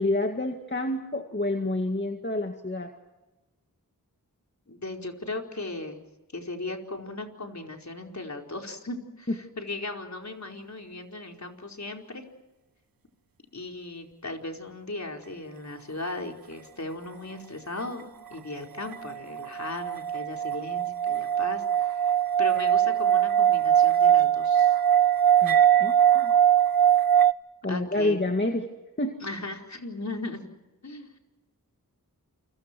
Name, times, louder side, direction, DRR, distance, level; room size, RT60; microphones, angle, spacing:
voice 1, 0.0-2.9 25.4-26.3 27.6-28.6 29.0-29.2, left 2 dB, 30° left, 4 dB, 2.2 m, -28 dB
voice 2, 4.7-6.0 6.3-12.2 13.5-24.7 27.7-28.3 29.2-30.5 30.8-31.1, left 2 dB, 50° left, 2 dB, 4.7 m, -37 dB
sound 1, 18.9-27.3, right 10 dB, 75° right, 0.8 m, -21 dB
29.0 x 26.5 x 4.6 m, 1.1 s
cardioid pair, 45°, 35 cm